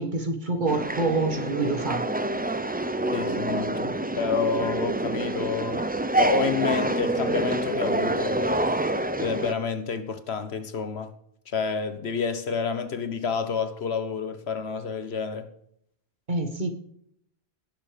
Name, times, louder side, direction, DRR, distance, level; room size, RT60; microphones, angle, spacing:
voice 1, 0.0-2.1 16.3-16.7, right 3 dB, 45° right, 1.8 m, -26 dB
sound 1, 0.7-9.5, right 2 dB, 15° right, 0.4 m, -27 dB
voice 2, 3.1-5.8 6.2-8.7 9.2-11.1 11.5-15.5, left 5 dB, 70° left, 1.4 m, -29 dB
18.0 x 6.9 x 5.2 m
omnidirectional pair, 1.1 m